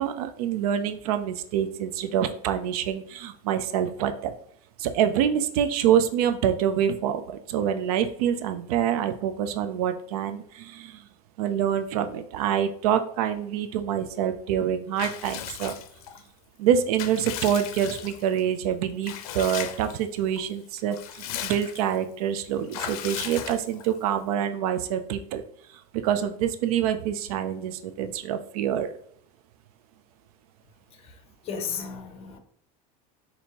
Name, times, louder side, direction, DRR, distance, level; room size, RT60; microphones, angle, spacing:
voice 1, 0.0-4.3 4.8-11.0 11.4-15.7 16.6-25.4 25.9-28.9, right 9 dB, 85° right, 9 dB, 0.4 m, -26 dB
Water / Bathtub (filling or washing) / Liquid, 15.0-16.2 16.7-18.4 19.0-20.0 20.4-20.5 20.8-22.0 22.7-24.0, left 10 dB, 80° left, 0.5 m, -36 dB
voice 2, 31.4-32.4, left 6 dB, 30° left, 7 dB, 0.7 m, -34 dB
4.3 x 2.7 x 2.8 m, 0.64 s
supercardioid pair, 135°, 19 cm